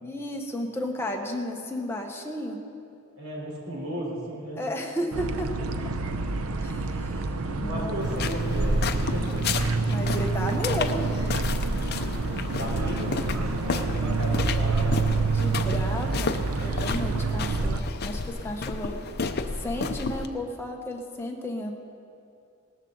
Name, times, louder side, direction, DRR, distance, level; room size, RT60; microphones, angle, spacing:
voice 1, 0.0-2.6 4.6-5.5 6.6-7.3 7.6-8.1 9.9-11.0 12.5-12.7 15.3-19.0 19.6-21.8, left 1 dB, 10° left, 1 dB, 1.2 m, -33 dB
voice 2, 3.2-4.6 7.6-8.8 9.1-9.5 12.6-15.3, equal, 70° right, -3 dB, 4.1 m, -34 dB
sound 1, 5.1-17.8, right 3 dB, 85° right, 0.7 m, -27 dB
sound 2, 8.0-20.3, left 4 dB, 50° left, 0.6 m, -32 dB
18.5 x 14.0 x 4.0 m, 2.5 s
head